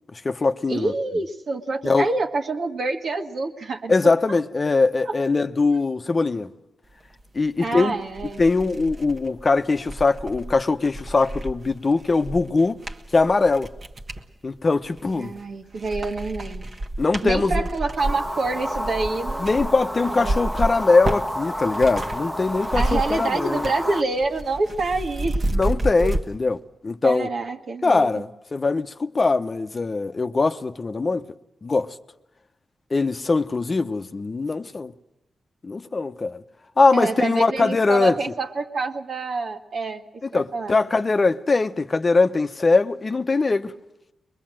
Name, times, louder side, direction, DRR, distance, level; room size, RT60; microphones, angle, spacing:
voice 1, 0.1-0.9 1.8-2.1 3.9-6.5 7.3-8.0 8.4-12.8 13.1-13.7 14.4-15.3 17.0-17.7 19.4-23.7 25.5-27.3 27.8-31.2 31.6-32.0 32.9-34.9 35.6-36.4 36.8-38.2 40.3-43.7, left 3 dB, 40° left, 0.9 m, -21 dB
voice 2, 0.7-4.1 5.1-5.2 7.6-8.4 15.1-16.6 17.2-19.6 20.0-20.4 22.7-25.4 26.0-26.1 27.0-28.1 36.9-40.0 40.3-40.7, right 3 dB, 70° right, 1.7 m, -27 dB
sound 1, 7.6-7.7 8.1-14.3 14.8-15.4 15.7-22.2 22.5-23.9 24.1-26.2, right 1 dB, 45° right, 1.4 m, -30 dB
sound 2, 18.0-24.0, equal, 5° right, 1.0 m, -30 dB
22.5 x 22.0 x 7.6 m
cardioid pair, 65°, 0 cm